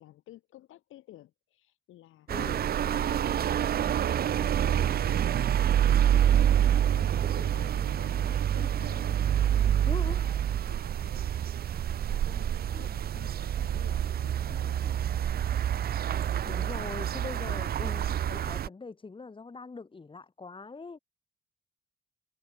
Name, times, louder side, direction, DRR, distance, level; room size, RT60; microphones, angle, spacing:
voice 1, 0.0-2.3 2.7-3.2 3.5-10.4 10.7-11.3 11.6-15.4, left 14 dB, 85° left, 7.3 m, -52 dB
voice 2, 2.3-2.7 9.8-10.2 12.7-12.8 16.4-21.0, left 4 dB, 25° left, 3.0 m, -42 dB
sound 1, 2.3-18.7, right 10 dB, 50° right, 0.6 m, -27 dB
cardioid pair, 90°, 20 cm